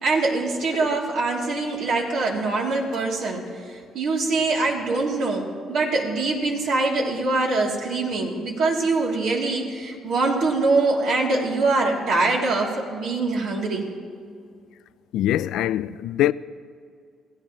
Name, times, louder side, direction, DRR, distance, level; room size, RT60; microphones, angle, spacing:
voice 1, 0.0-3.5 3.9-13.9, right 3 dB, 70° right, 3.1 m, -23 dB
voice 2, 15.1-16.3, left 13 dB, 80° left, 0.4 m, -23 dB
27.5 x 16.0 x 3.2 m
cardioid pair, 135°, 0 cm